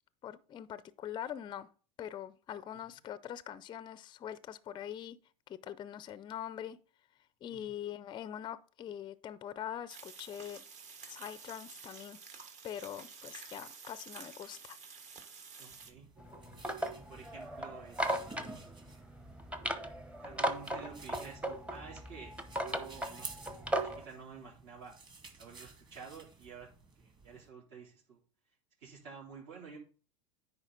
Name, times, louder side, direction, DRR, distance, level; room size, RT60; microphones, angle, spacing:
voice 1, 0.2-1.7 2.0-5.2 5.5-6.8 7.4-10.6 11.1-12.2 12.6-14.8, left 10 dB, 25° left, 0.4 m, -43 dB
sound 1, 9.9-15.9, right 5 dB, 40° right, 1.4 m, -51 dB
voice 2, 15.6-16.1 16.9-18.4 20.2-25.0 25.4-26.7 27.0-28.2 28.8-29.8, right 5 dB, 65° right, 3.7 m, -51 dB
sound 2, 15.7-27.5, right 4 dB, 25° right, 2.0 m, -53 dB
sound 3, 16.2-24.1, right 1 dB, 5° right, 0.8 m, -37 dB
9.8 x 4.4 x 3.8 m
hypercardioid pair, 95°, 18 cm